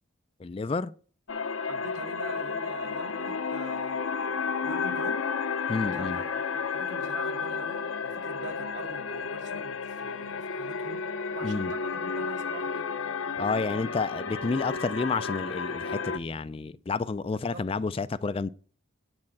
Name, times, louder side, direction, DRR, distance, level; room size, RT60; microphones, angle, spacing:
voice 1, 0.4-0.9 5.7-6.2 11.4-11.7 13.4-18.5, left 4 dB, 30° left, 0.3 m, -30 dB
sound 1, 1.3-16.2, left 5 dB, 80° left, 0.9 m, -32 dB
voice 2, 1.6-4.0 4.6-5.3 5.9-6.3 6.5-12.9 17.3-17.9, right 3 dB, 65° right, 1.4 m, -44 dB
9.7 x 4.3 x 7.3 m
head